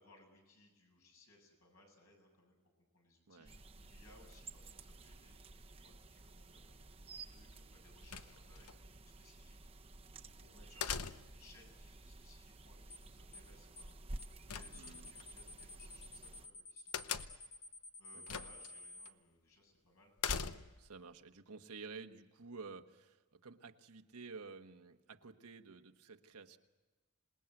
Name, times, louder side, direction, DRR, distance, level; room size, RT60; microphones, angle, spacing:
voice 1, 0.0-5.4 5.7-17.1 17.7-20.2, left 2 dB, 70° left, 2 dB, 7.7 m, -66 dB
sound 1, 3.4-16.5, right 2 dB, 25° right, 0.9 m, -53 dB
sound 2, 8.1-8.7 10.8-11.5 14.5-15.2 16.9-17.6 18.3-18.7 19.1-19.2 20.2-20.9, left 6 dB, 90° left, 0.9 m, -40 dB
sound 3, 12.9-13.1 13.3-13.5 13.8-13.9 14.2-14.4 14.6-19.1, left 2 dB, 50° left, 1.6 m, -52 dB
voice 2, 14.7-15.1 18.1-18.4 20.8-26.6, right 4 dB, 90° right, 6 dB, 1.4 m, -52 dB
27.0 x 20.0 x 7.9 m, 1.2 s
head